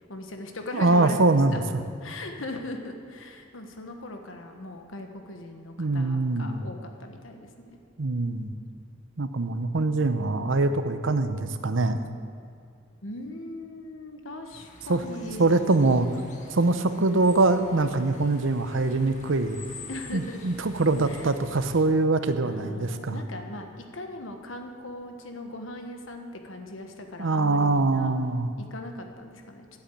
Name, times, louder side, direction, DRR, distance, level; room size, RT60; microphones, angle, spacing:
voice 1, 0.1-1.6 2.0-7.8 13.0-15.8 19.9-20.5 21.0-21.3 22.4-28.1 28.6-29.8, left 1 dB, 85° left, 4 dB, 1.3 m, -39 dB
voice 2, 0.7-1.8 5.8-6.6 8.0-8.5 9.2-12.0 14.9-15.0 15.4-16.1 16.5-19.6 20.1-23.2 27.2-28.5, right 3 dB, 75° right, 10 dB, 0.8 m, -23 dB
sound 1, 14.5-21.8, left 3 dB, 40° left, 1.5 m, -47 dB
10.5 x 8.5 x 8.4 m, 2.4 s
head